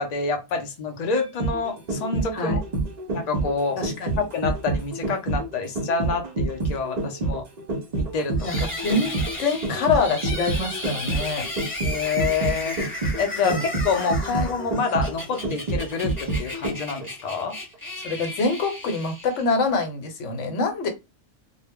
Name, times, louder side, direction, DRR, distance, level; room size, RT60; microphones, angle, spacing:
voice 1, 0.0-2.6 3.1-3.8 4.2-7.4 8.0-8.7 11.8-12.8 13.2-17.6, left 4 dB, 50° left, 0.5 m, -27 dB
sound 1, 1.2-17.0 17.4-17.5, right 3 dB, 50° right, 0.5 m, -28 dB
voice 2, 3.8-4.3 8.4-8.5 8.8-9.1 9.4-11.4 13.4-13.6 14.3-14.5 18.0-20.9, left 4 dB, 85° left, 1.0 m, -25 dB
sound 2, 8.4-19.7, left 2 dB, 10° left, 0.8 m, -34 dB
2.1 x 2.0 x 3.4 m
omnidirectional pair, 1.2 m